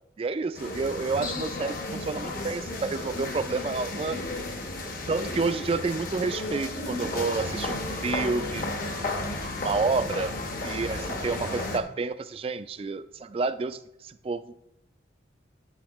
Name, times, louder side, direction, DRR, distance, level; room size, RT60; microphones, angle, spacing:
voice 1, 0.2-4.2 5.1-8.6 9.0-9.3 9.6-10.4 10.6-14.7, right 4 dB, 30° right, 12 dB, 0.3 m, -30 dB
sound 1, 0.5-11.8, left 2 dB, 50° left, 0.9 m, -33 dB
10.5 x 8.4 x 2.9 m, 0.84 s
head